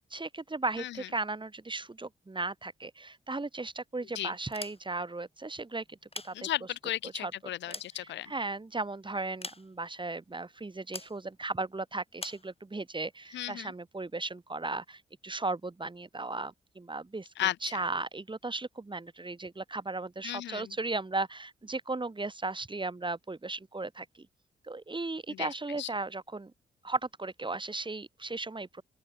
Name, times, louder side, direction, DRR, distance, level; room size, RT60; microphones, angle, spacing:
voice 1, 0.1-6.0 6.2-6.5 7.1-7.3 7.7-24.3 24.6-26.5 26.8-28.8, right 3 dB, 25° right, 2.7 m, -36 dB
sound 1, 4.4-5.2 5.9-6.9 7.4-8.6 9.4-10.0 10.9-11.2 12.2-12.5, left 3 dB, 30° left, 4.7 m, -44 dB
voice 2, 6.3-8.3 13.3-13.7 17.4-17.8 20.2-20.7 25.3-25.5 25.8-25.9, left 13 dB, 80° left, 1.2 m, -35 dB
open air
hypercardioid pair, 40°, 18 cm